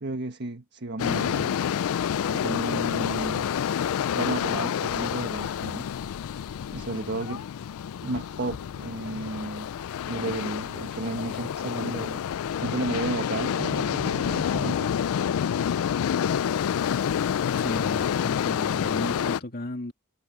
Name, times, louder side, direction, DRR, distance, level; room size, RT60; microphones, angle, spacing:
voice 1, 0.0-1.6 2.3-3.5 4.1-5.9 6.7-7.4 8.0-9.7 10.1-12.2 12.6-14.9, right 2 dB, 50° right, 1.5 m, -33 dB
sound 1, 1.0-19.4, left 8 dB, 65° left, 0.3 m, -28 dB
voice 2, 17.6-19.9, left 1 dB, 45° left, 2.2 m, -34 dB
head